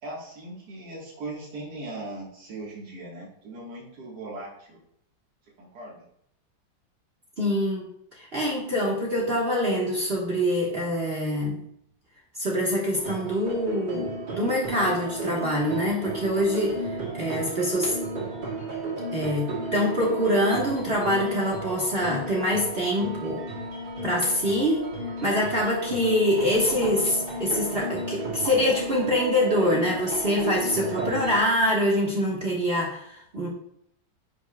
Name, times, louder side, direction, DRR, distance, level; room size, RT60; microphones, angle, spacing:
voice 1, 0.0-4.8 5.6-6.0 25.8-26.0 30.8-31.1, right 2 dB, 60° right, -3 dB, 2.1 m, -38 dB
voice 2, 7.4-7.9 8.2-11.6 12.4-16.8 17.2-17.9 19.1-23.4 24.0-24.9 25.2-33.5, equal, 35° right, -4 dB, 1.4 m, -25 dB
sound 1, 12.9-31.4, right 1 dB, 80° right, 2.8 m, -34 dB
10.0 x 5.7 x 2.3 m, 0.72 s
omnidirectional pair, 2.1 m